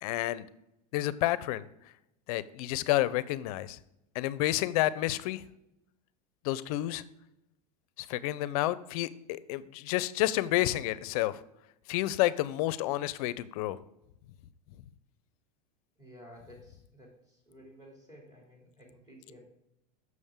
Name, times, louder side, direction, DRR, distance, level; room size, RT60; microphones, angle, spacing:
voice 1, 0.0-0.5 0.9-1.7 2.3-3.8 4.1-5.4 6.4-7.0 8.0-11.4 11.9-13.8, left 15 dB, 65° left, 0.5 m, -30 dB
voice 2, 16.0-19.4, equal, 20° right, 3.0 m, -53 dB
7.1 x 6.2 x 3.6 m
supercardioid pair, 125°, 20 cm